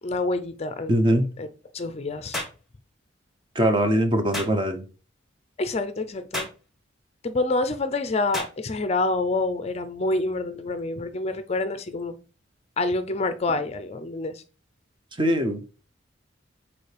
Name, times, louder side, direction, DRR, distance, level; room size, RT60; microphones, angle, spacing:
voice 1, 0.0-1.5 1.7-2.4 5.6-6.5 7.2-12.2 12.8-14.4, left 2 dB, 30° left, 0.4 m, -27 dB
voice 2, 0.9-1.3 3.5-4.8 15.2-15.9, equal, 25° right, 0.7 m, -22 dB
sound 1, 2.3-2.6 4.3-4.6 6.3-6.6 8.3-8.6, left 1 dB, ahead, 1.3 m, -31 dB
6.9 x 4.3 x 3.3 m
head